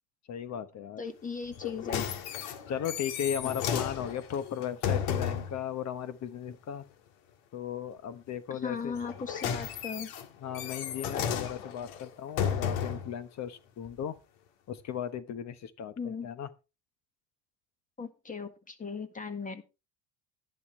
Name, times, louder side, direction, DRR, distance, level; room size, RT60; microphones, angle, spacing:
voice 1, 0.3-1.0 2.7-6.8 7.5-9.0 10.4-14.2 14.7-16.5, left 9 dB, 45° left, 1.1 m, -36 dB
voice 2, 1.0-2.1 8.5-10.1 16.0-16.3 18.0-19.6, left 5 dB, 20° left, 1.7 m, -38 dB
sound 1, 1.5-5.6 8.9-13.1 13.9-14.0, left 8 dB, 85° left, 2.0 m, -33 dB
12.0 x 11.0 x 3.2 m
cardioid pair, 130°, 40 cm